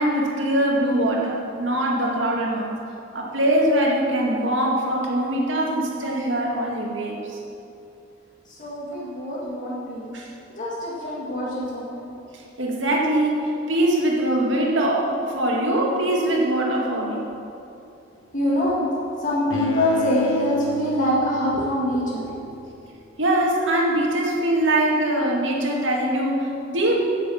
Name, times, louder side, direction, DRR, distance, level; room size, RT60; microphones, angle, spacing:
voice 1, 0.0-2.8 3.1-7.2 10.1-10.3 12.3-17.3 23.2-27.0, right 1 dB, 80° right, -1 dB, 2.0 m, -22 dB
voice 2, 8.5-10.2 10.6-12.0 18.3-18.8 19.2-22.4, left 1 dB, 45° left, -6 dB, 2.0 m, -24 dB
Bowed string instrument, 19.5-22.6, right 2 dB, 85° left, 0.8 m, -31 dB
10.5 x 7.1 x 7.1 m, 2.7 s
head